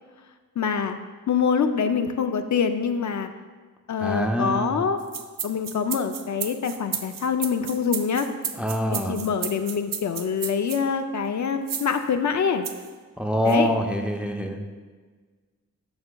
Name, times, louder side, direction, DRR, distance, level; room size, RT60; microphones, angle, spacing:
voice 1, 0.6-1.0 1.3-3.3 3.9-5.0 5.4-8.3 8.9-12.7 13.4-13.7, left 6 dB, 60° left, 7 dB, 0.4 m, -25 dB
voice 2, 4.0-4.8 8.6-9.2 13.2-14.6, equal, 5° right, 2 dB, 0.6 m, -25 dB
sound 1, 5.0-10.8 11.7-12.0 12.6-12.9 13.5-13.6, right 8 dB, 90° right, 0.6 m, -33 dB
11.0 x 6.6 x 2.2 m, 1.4 s
wide cardioid pair, 135°, 32 cm